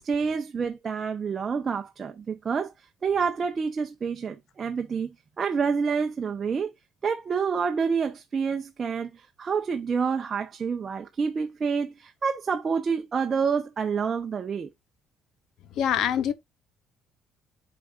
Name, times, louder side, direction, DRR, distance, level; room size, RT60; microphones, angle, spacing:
voice 1, 0.0-2.7 3.0-5.1 5.4-6.7 7.0-14.7, right 5 dB, 35° right, 0.7 m, -28 dB
voice 2, 15.8-16.3, left 9 dB, 70° left, 0.9 m, -24 dB
8.5 x 4.9 x 2.4 m
cardioid pair, 115°, 0 cm